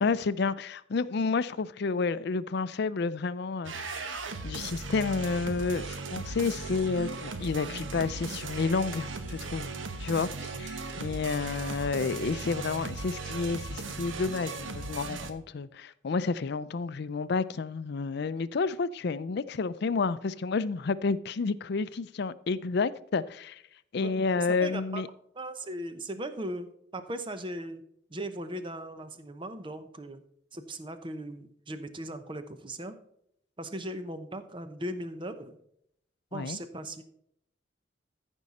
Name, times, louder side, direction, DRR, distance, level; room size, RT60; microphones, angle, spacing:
voice 1, 0.0-9.7 10.0-23.6 23.9-25.1 36.3-36.6, left 4 dB, 60° left, 0.4 m, -30 dB
sound 1, 3.6-15.3, right 3 dB, 85° right, 1.0 m, -37 dB
voice 2, 24.0-25.0 25.3-27.8 28.1-30.2 30.5-32.9 33.6-35.6 36.3-37.0, right 1 dB, 25° right, 0.8 m, -38 dB
14.0 x 5.4 x 4.1 m
head